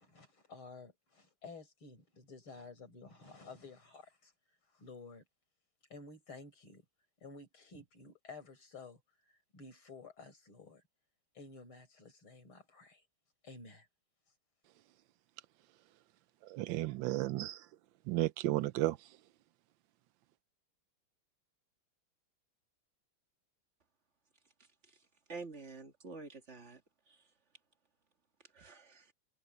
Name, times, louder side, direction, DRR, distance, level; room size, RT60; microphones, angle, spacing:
voice 1, 0.0-4.3 4.7-5.2 5.9-6.8 7.2-10.8 11.3-13.0 13.4-13.9, left 3 dB, 75° left, 5.8 m, -53 dB
voice 2, 16.4-17.6 18.1-19.0, right 16 dB, 75° right, 1.2 m, -33 dB
voice 3, 25.3-26.8 27.1-27.2 28.5-29.1, right 4 dB, 35° right, 2.0 m, -48 dB
omnidirectional pair, 2.3 m